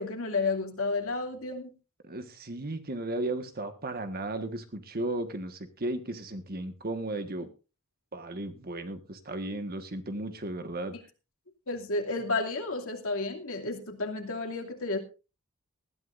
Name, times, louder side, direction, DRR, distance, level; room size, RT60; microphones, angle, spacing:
voice 1, 0.0-1.7 11.7-15.0, left 3 dB, 70° left, 2 dB, 2.6 m, -31 dB
voice 2, 2.0-7.5 8.1-10.9, right 2 dB, 45° right, 8 dB, 1.5 m, -35 dB
19.5 x 13.5 x 2.6 m, 0.32 s
head